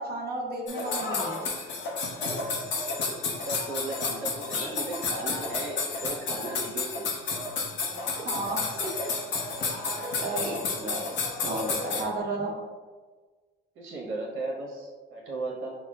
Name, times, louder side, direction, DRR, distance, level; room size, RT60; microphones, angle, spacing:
voice 1, 0.0-1.4 8.2-9.1 9.6-9.8 10.2-12.5, right 2 dB, 50° right, -2 dB, 1.0 m, -33 dB
sound 1, 0.7-12.0, left 4 dB, 65° left, 0.8 m, -31 dB
voice 2, 2.6-7.1 8.1-8.3 13.7-15.8, right 2 dB, 85° right, -2 dB, 0.9 m, -36 dB
6.3 x 2.2 x 2.3 m, 1.4 s
cardioid pair, 90°, 20 cm